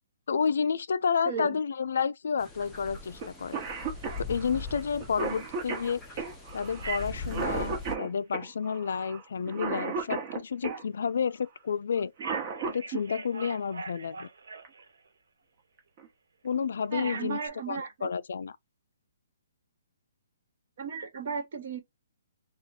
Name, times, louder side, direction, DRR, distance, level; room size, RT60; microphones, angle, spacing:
voice 1, 0.3-3.6 4.2-6.0 6.5-12.1 12.7-14.3 16.4-17.4 17.7-18.6, left 6 dB, 60° left, 0.4 m, -30 dB
voice 2, 1.2-1.6 16.9-18.1 20.8-21.8, right 5 dB, 45° right, 1.3 m, -35 dB
sound 1, 2.4-7.9, left 4 dB, 5° left, 0.6 m, -41 dB
Cough, 3.2-3.3 3.5-10.8 12.0-13.0 14.6-14.7 15.8-16.1 16.5-16.6 17.0-17.5, right 5 dB, 25° right, 1.1 m, -35 dB
Telephone, 6.8-7.3 12.2-15.1 17.0-17.5, right 5 dB, 75° right, 1.2 m, -41 dB
3.6 x 2.4 x 4.2 m
hypercardioid pair, 175°, 0 cm